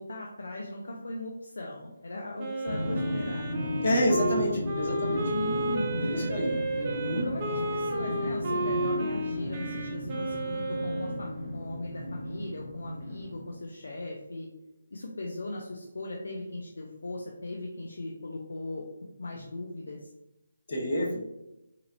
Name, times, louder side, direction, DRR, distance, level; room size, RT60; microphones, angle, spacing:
voice 1, 0.0-3.5 5.3-6.8 7.2-14.5 14.9-18.8 19.2-20.1, left 2 dB, 70° left, 0 dB, 0.5 m, -38 dB
Wind instrument woodwind instrument, 2.4-11.2, right 2 dB, 35° right, 0.7 m, -32 dB
Drum, 2.7-13.7, left 1 dB, 15° left, 1.1 m, -35 dB
voice 2, 3.8-5.2 6.0-7.3 20.7-21.2, equal, 55° left, -3 dB, 1.2 m, -28 dB
3.9 x 2.9 x 2.6 m, 0.94 s
figure-of-eight pair, 155°, 0 cm